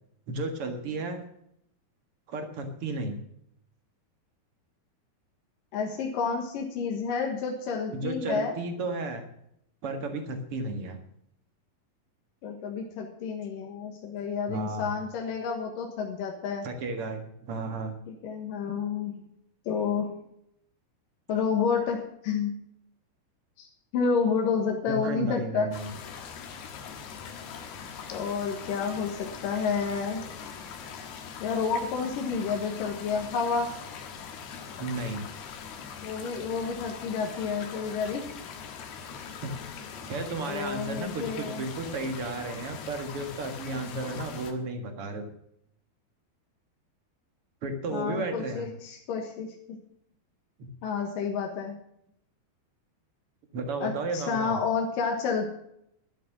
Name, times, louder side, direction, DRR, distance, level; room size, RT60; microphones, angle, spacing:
voice 1, 0.3-1.2 2.3-3.2 7.9-9.3 9.8-11.0 14.5-14.9 16.6-17.9 24.9-25.9 34.8-35.2 39.4-39.5 40.1-45.3 47.6-48.7 50.6-50.7 53.5-54.6, right 2 dB, 50° right, 6 dB, 2.0 m, -33 dB
voice 2, 5.7-8.5 12.4-16.7 18.1-19.2 19.7-20.1 21.3-22.5 23.6-23.7 23.9-25.7 28.1-30.2 31.4-33.7 36.0-38.2 40.5-41.6 47.9-49.8 50.8-51.8 53.8-55.5, left 5 dB, 65° left, 1 dB, 3.0 m, -30 dB
sound 1, 25.7-44.5, left 6 dB, 85° left, 3.5 m, -42 dB
12.5 x 10.5 x 6.0 m, 0.73 s
omnidirectional pair, 4.4 m